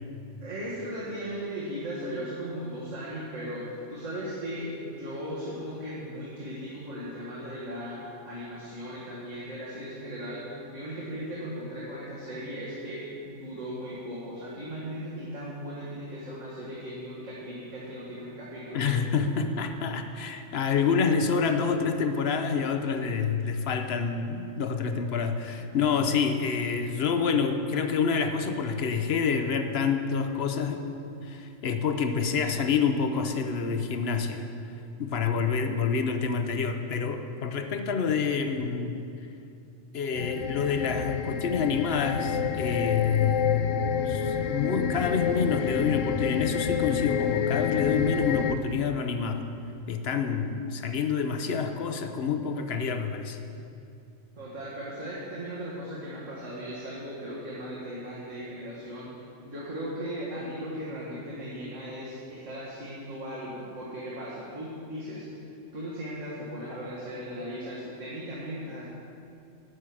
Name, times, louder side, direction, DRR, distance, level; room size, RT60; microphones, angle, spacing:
voice 1, 0.4-19.0 19.3-19.4 25.6-25.7 54.4-59.1 59.4-65.4 65.7-68.9, equal, 85° right, -8 dB, 2.3 m, -37 dB
voice 2, 18.7-30.8 31.2-34.5 35.0-39.0 39.9-43.6 44.1-49.5 49.9-53.4, left 5 dB, 60° left, 7 dB, 1.0 m, -27 dB
sound 1, 40.1-48.5, left 8 dB, 80° left, 1.0 m, -28 dB
11.5 x 6.1 x 8.6 m, 2.6 s
omnidirectional pair, 1.3 m